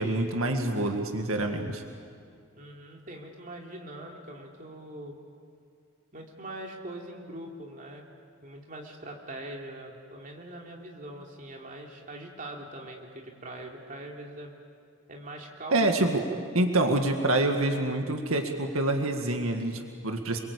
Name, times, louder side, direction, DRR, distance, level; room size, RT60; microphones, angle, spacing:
voice 1, 0.0-1.8 15.7-16.2 16.5-20.4, right 2 dB, 85° right, 4 dB, 2.0 m, -26 dB
voice 2, 2.5-5.2 6.1-8.0 8.4-14.6 15.1-16.1, right 1 dB, 40° right, 0 dB, 3.2 m, -42 dB
28.5 x 23.0 x 8.5 m, 2.3 s
head